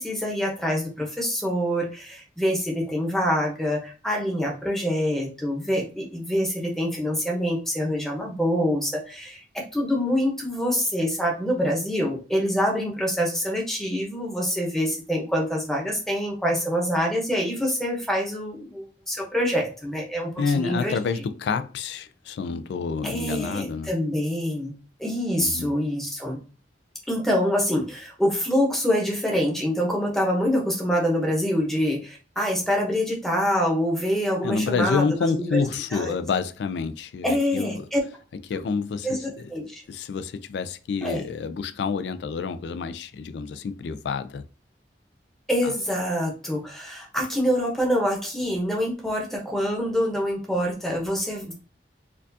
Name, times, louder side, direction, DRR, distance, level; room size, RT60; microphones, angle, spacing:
voice 1, 0.0-9.4 9.7-20.3 20.6-21.0 23.0-24.7 25.0-26.4 27.1-35.6 35.9-36.1 37.2-38.0 39.0-39.2 39.5-39.8 41.0-41.2 45.5-51.5, equal, ahead, 0.8 m, -25 dB
voice 2, 20.4-23.9 25.4-25.7 34.4-37.9 38.5-39.5 39.9-44.5 45.6-45.8, left 5 dB, 75° left, 0.3 m, -28 dB
4.3 x 2.4 x 2.7 m
head